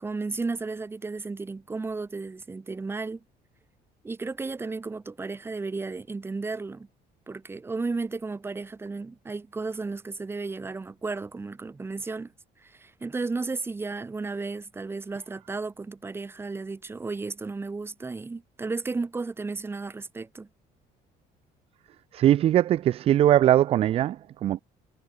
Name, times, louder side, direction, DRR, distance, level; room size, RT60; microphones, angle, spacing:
voice 1, 0.0-3.2 4.0-6.9 7.3-12.3 12.6-20.5, right 3 dB, 15° right, 5.4 m, -33 dB
voice 2, 22.1-24.6, right 12 dB, 35° right, 0.4 m, -21 dB
cardioid pair, 180°, 17 cm